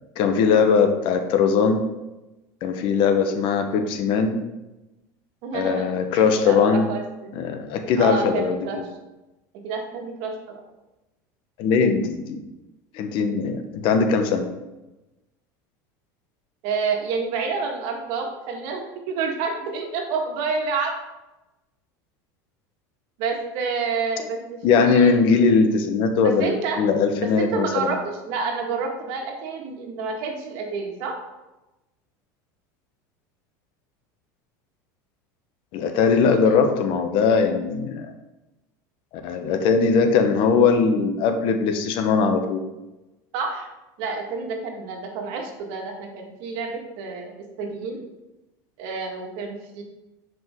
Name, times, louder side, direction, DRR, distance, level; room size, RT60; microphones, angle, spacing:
voice 1, 0.2-1.8 2.6-4.4 5.5-6.9 7.3-8.8 11.6-12.4 12.9-14.5 24.2-24.3 24.6-26.5 26.8-27.9 35.7-38.1 39.2-42.6, left 5 dB, 60° left, 6 dB, 1.0 m, -20 dB
voice 2, 5.4-5.9 6.1-7.3 8.0-8.8 9.6-10.6 16.6-21.0 23.2-25.1 26.2-26.8 27.2-28.0 28.2-31.2 43.3-43.7 44.0-47.3 47.6-48.0 48.8-49.8, right 4 dB, 65° right, 2 dB, 1.7 m, -29 dB
7.7 x 5.1 x 3.6 m, 1.0 s
supercardioid pair, 110°, 10 cm